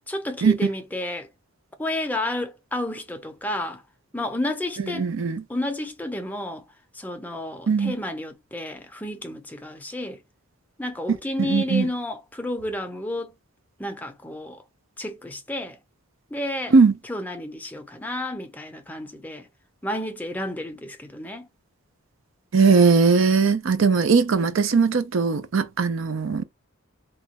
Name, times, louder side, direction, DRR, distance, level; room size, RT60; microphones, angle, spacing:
voice 1, 0.1-1.3 1.8-3.8 4.1-5.1 5.5-6.6 6.9-10.2 10.8-13.3 13.8-14.6 15.0-15.8 16.3-16.7 17.0-19.5 19.8-21.5, left 1 dB, 10° left, 0.5 m, -31 dB
voice 2, 5.0-5.4 7.7-7.9 11.4-11.9 16.7-16.9 22.5-26.4, right 4 dB, 65° right, 0.5 m, -19 dB
2.9 x 2.2 x 2.9 m
head